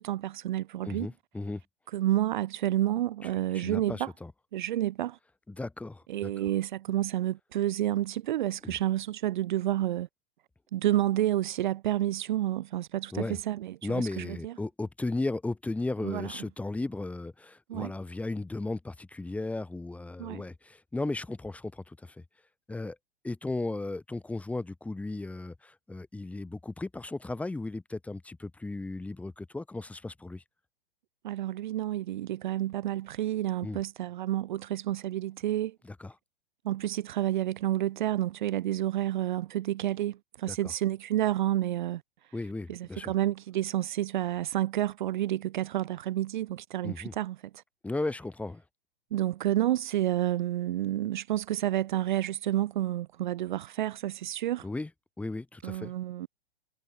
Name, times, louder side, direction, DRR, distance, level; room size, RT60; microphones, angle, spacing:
voice 1, 0.0-1.1 1.9-4.1 4.5-5.2 6.1-10.1 10.7-14.5 16.0-16.3 17.7-17.9 20.2-20.4 31.2-35.8 36.6-42.0 42.7-47.6 49.1-54.7 55.6-56.3, right 13 dB, 55° right, 0.5 m, -30 dB
voice 2, 0.8-1.6 3.5-4.3 5.5-6.3 8.6-8.7 13.1-13.4 13.8-22.2 22.7-23.0 23.2-30.4 33.6-33.8 35.8-36.1 40.5-40.6 42.3-43.1 46.8-47.1 47.8-48.6 54.6-54.9 55.2-55.9, left 2 dB, 5° left, 1.0 m, -35 dB
figure-of-eight pair, 110°, 29 cm